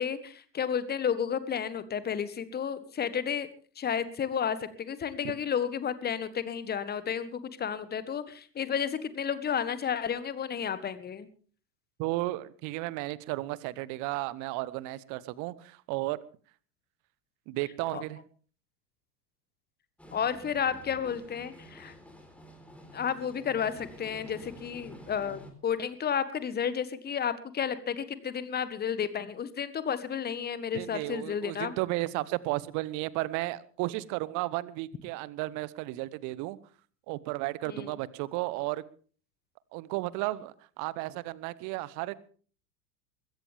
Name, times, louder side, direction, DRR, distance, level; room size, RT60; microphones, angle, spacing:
voice 1, 0.0-3.5 3.7-11.3 17.9-18.0 20.1-21.9 22.9-31.7 37.7-38.0, left 7 dB, 20° left, 14 dB, 1.5 m, -32 dB
voice 2, 12.0-16.2 17.5-18.2 30.7-36.6 37.1-38.8 39.7-42.3, right 19 dB, 35° right, 20 dB, 1.0 m, -33 dB
sound 1, 20.0-25.5, equal, 5° left, 3.9 m, -50 dB
21.5 x 16.5 x 3.5 m, 0.43 s
figure-of-eight pair, 90°, 50 cm